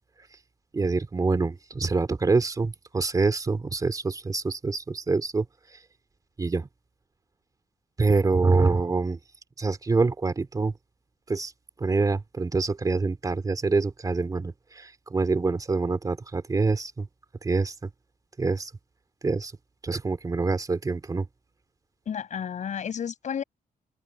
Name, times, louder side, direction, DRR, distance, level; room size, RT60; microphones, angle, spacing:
voice 1, 0.7-5.5 5.7-5.8 6.4-6.7 8.0-9.2 9.6-10.7 11.3-11.5 11.8-17.1 17.4-17.9 18.4-18.7 19.2-19.5 19.8-21.3, right 3 dB, 25° right, 2.7 m, -25 dB
voice 2, 22.1-23.4, left 8 dB, 55° left, 7.7 m, -32 dB
wide cardioid pair, 150°, 15 cm